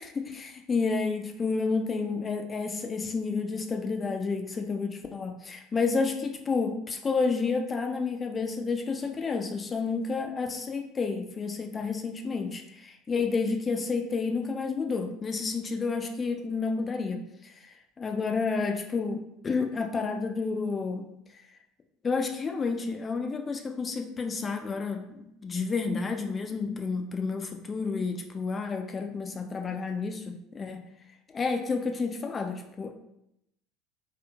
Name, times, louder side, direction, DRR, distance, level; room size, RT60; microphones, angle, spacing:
voice 1, 0.0-21.1 21.3-21.4 22.0-30.8 31.3-32.9, left 4 dB, 30° left, 4 dB, 0.3 m, -30 dB
2.9 x 2.4 x 2.3 m, 0.81 s
hypercardioid pair, 70°, 0 cm